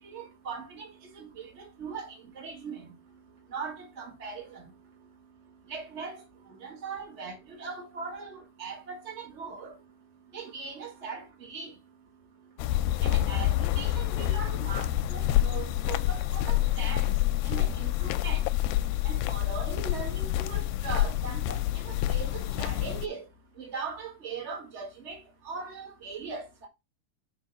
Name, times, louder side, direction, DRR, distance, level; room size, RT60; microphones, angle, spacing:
voice 1, 0.0-0.9 1.1-2.8 3.5-4.6 5.7-6.2 6.6-9.7 10.3-11.7 13.0-17.1 17.4-18.4 19.0-23.2 23.6-26.7, right 5 dB, 40° right, 0.9 m, -40 dB
sound 1, 12.6-23.1, left 14 dB, 85° left, 2.4 m, -27 dB
6.3 x 5.3 x 5.5 m
omnidirectional pair, 4.2 m